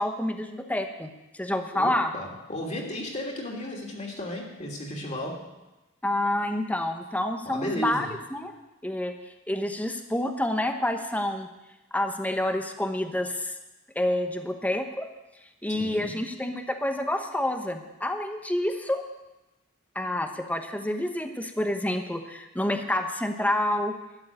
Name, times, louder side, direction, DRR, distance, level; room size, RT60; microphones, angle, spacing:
voice 1, 0.0-2.1 6.0-8.5 8.8-9.1 9.5-11.5 11.9-13.5 13.9-15.1 15.6-19.0 19.9-23.9, left 1 dB, 10° left, 5 dB, 1.0 m, -28 dB
voice 2, 1.7-5.5 7.4-8.1 15.7-16.2, equal, 35° left, -1 dB, 2.9 m, -34 dB
12.5 x 7.3 x 9.9 m, 0.99 s
head